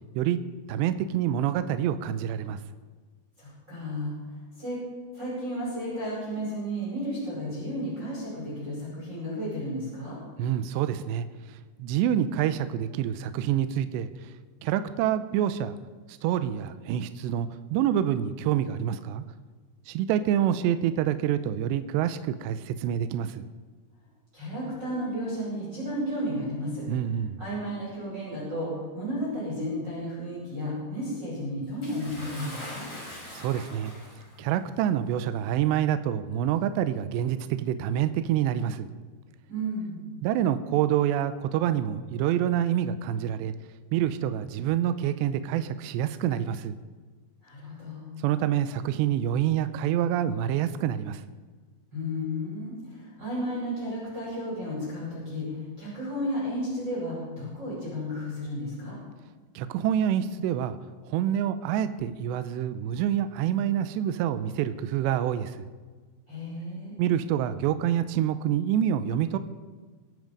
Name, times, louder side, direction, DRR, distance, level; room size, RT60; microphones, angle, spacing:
voice 1, 0.7-2.6 10.4-14.3 14.6-15.8 16.1-19.2 19.9-23.4 26.9-27.4 33.3-33.9 34.4-38.9 40.2-43.5 43.9-46.8 48.2-51.2 59.6-60.8 61.0-65.7 67.0-69.4, right 10 dB, 80° right, 11 dB, 2.7 m, -27 dB
voice 2, 3.4-4.1 4.6-4.8 5.1-10.2 24.3-26.8 27.4-32.9 39.5-40.0 47.4-48.0 51.9-59.0 66.3-67.0, equal, 20° right, -7 dB, 5.9 m, -33 dB
Bathtub (filling or washing) / Splash splatter, 31.8-34.4 35.3-35.4 36.4-36.5, left 1 dB, 20° left, 6.0 m, -42 dB
23.0 x 9.3 x 5.2 m, 1.4 s
omnidirectional pair, 5.4 m